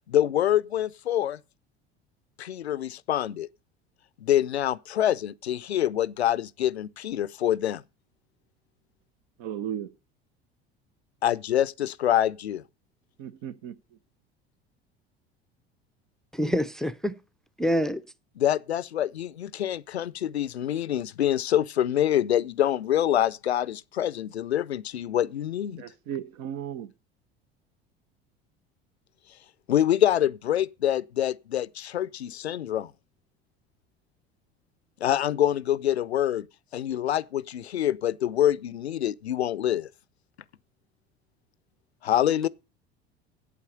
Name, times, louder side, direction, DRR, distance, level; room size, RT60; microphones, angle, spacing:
voice 1, 0.1-1.4 2.4-3.5 4.2-7.8 11.2-12.6 18.4-25.8 29.7-32.9 35.0-36.5 36.7-39.9 42.0-42.5, left 11 dB, 85° left, 0.5 m, -26 dB
voice 2, 9.4-9.9 13.2-13.8 25.8-26.9, right 10 dB, 60° right, 1.0 m, -35 dB
voice 3, 16.3-17.2 17.6-18.0, equal, ahead, 0.6 m, -26 dB
8.5 x 8.3 x 6.7 m
figure-of-eight pair, 70°, 31 cm